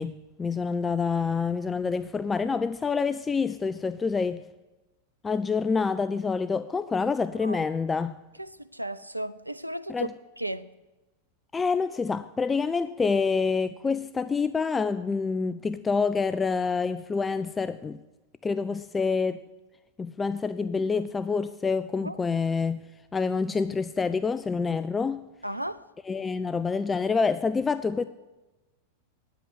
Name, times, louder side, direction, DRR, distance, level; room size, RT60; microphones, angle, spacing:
voice 1, 0.0-4.4 5.2-8.2 9.9-10.1 11.5-18.0 18.4-19.4 20.0-25.3 26.1-28.0, left 5 dB, 15° left, 0.3 m, -27 dB
voice 2, 8.4-10.1 10.4-10.7 22.0-22.3 25.4-25.8, right 1 dB, 90° right, 0.5 m, -35 dB
9.7 x 8.2 x 9.4 m
figure-of-eight pair, 90°, 0 cm